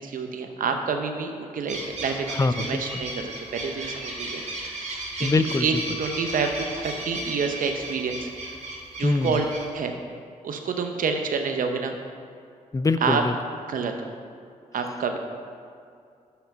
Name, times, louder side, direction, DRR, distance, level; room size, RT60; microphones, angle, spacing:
voice 1, 0.0-4.4 4.8-8.3 9.0-9.4 9.7-9.9 10.4-12.0 13.0-13.2 13.7-13.9 14.7-15.2, right 5 dB, 70° right, 5 dB, 0.7 m, -28 dB
sound 1, 1.7-9.7, right 1 dB, 50° right, 1.8 m, -35 dB
voice 2, 2.4-3.0 5.2-5.6 9.0-9.3 12.7-13.3, left 3 dB, 20° left, 11 dB, 0.4 m, -23 dB
5.8 x 5.7 x 5.4 m, 2.4 s
cardioid pair, 55°, 15 cm